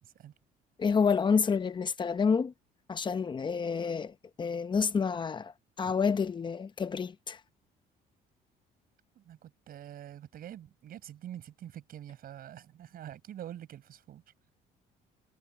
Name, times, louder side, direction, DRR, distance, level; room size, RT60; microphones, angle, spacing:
voice 1, 0.0-0.3 5.8-5.9 9.1-14.2, right 11 dB, 60° right, 6.4 m, -46 dB
voice 2, 0.8-2.5 2.9-4.1 4.4-5.5 5.8-7.4, left 5 dB, 25° left, 0.9 m, -28 dB
cardioid pair, 110°, 17 cm